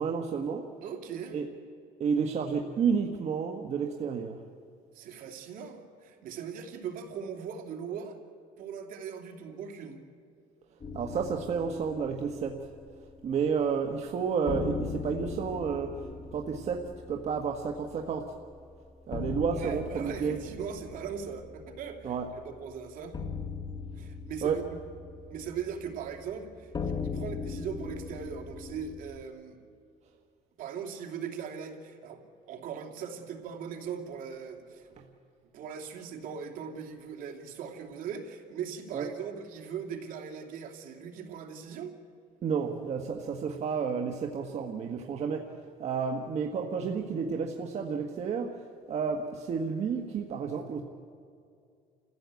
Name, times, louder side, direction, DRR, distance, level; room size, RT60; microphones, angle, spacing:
voice 1, 0.0-0.6 1.3-1.5 2.0-4.4 10.9-12.7 13.2-16.0 16.3-18.3 19.1-20.4 22.0-22.3 24.4-24.6 35.0-35.1 38.9-39.1 42.4-45.5 45.8-48.5 48.9-50.8, right 6 dB, 45° right, 3 dB, 1.4 m, -31 dB
voice 2, 0.8-1.4 4.9-8.2 8.6-10.0 19.5-23.2 24.0-24.8 25.3-29.6 30.6-34.9 35.5-41.9, right 7 dB, 65° right, 2 dB, 2.9 m, -40 dB
sound 1, 10.8-13.7 13.9-14.0 14.5-29.2, left 5 dB, 30° left, 1.3 m, -40 dB
28.5 x 15.5 x 8.3 m, 2.4 s
cardioid pair, 125°, 15 cm